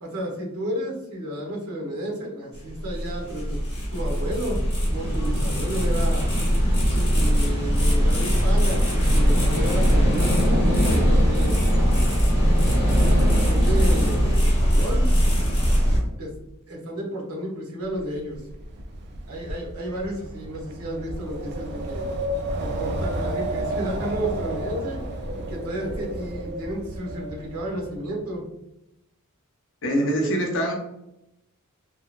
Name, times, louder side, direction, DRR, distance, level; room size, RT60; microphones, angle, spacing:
voice 1, 0.0-3.6 3.9-4.6 4.9-6.3 7.1-11.6 12.3-12.8 13.3-15.1 16.2-16.3 16.7-18.4 19.3-22.1 22.6-25.0 25.3-28.4 30.0-30.3, right 1 dB, 70° right, -2 dB, 0.9 m, -32 dB
sound 1, 2.5-16.0, equal, 25° left, 0.9 m, -21 dB
sound 2, 4.9-14.4, equal, 10° right, 0.7 m, -29 dB
Wind, 18.0-28.0, right 1 dB, 50° right, 0.4 m, -32 dB
voice 2, 29.8-30.7, equal, 60° left, 0 dB, 0.7 m, -24 dB
2.8 x 2.0 x 2.4 m, 0.87 s
head